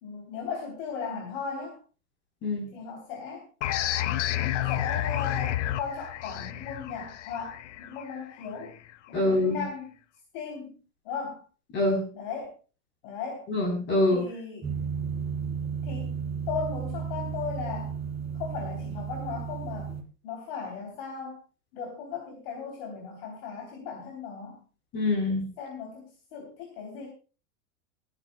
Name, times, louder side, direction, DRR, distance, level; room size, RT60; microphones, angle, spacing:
voice 1, 0.0-1.8 2.7-3.5 4.5-8.8 9.1-9.9 10.3-11.4 12.1-12.5 13.0-13.5 14.1-14.7 15.8-16.2 16.5-18.0 18.3-20.0 20.2-21.4 21.7-24.6 25.6-27.1, left 5 dB, 50° left, 1 dB, 3.5 m, -37 dB
sound 1, 3.6-8.9, left 13 dB, 75° left, 1.1 m, -31 dB
voice 2, 9.1-9.6 11.7-12.1 13.5-14.2 24.9-25.4, left 2 dB, 30° left, 2 dB, 4.2 m, -25 dB
sound 2, 14.6-20.0, right 6 dB, 15° right, 2.4 m, -33 dB
27.0 x 9.9 x 2.4 m, 0.36 s
supercardioid pair, 150°, 36 cm